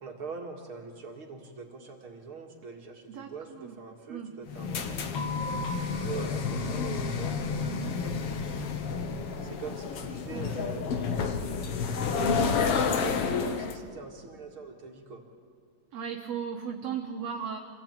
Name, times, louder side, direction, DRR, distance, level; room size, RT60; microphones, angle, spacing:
voice 1, 0.0-5.1 5.8-7.4 8.0-8.8 9.4-11.3 12.2-15.2, right 4 dB, 45° right, 1 dB, 2.4 m, -43 dB
voice 2, 3.1-3.8 4.1-4.4 7.6-8.0 10.3-10.5 15.9-17.6, right 7 dB, 60° right, 3 dB, 2.0 m, -36 dB
sound 1, 4.5-13.8, left 5 dB, 55° left, 1.8 m, -30 dB
26.5 x 17.0 x 9.1 m, 2.1 s
omnidirectional pair, 3.9 m